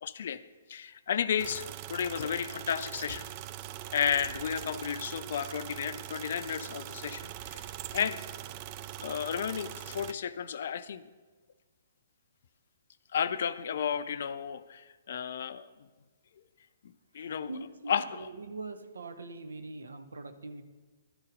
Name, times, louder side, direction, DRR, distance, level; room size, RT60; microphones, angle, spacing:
voice 1, 0.0-0.4 0.7-3.3 3.9-7.7 7.9-8.2 9.0-11.0 13.1-15.7 17.1-17.5 17.9-18.3, left 8 dB, 60° left, 13 dB, 0.4 m, -33 dB
sound 1, 1.4-10.1, right 13 dB, 35° right, 0.3 m, -42 dB
voice 2, 17.2-20.6, right 3 dB, 75° right, 9 dB, 0.7 m, -43 dB
11.5 x 4.0 x 5.1 m, 1.3 s
figure-of-eight pair, 125°, 0 cm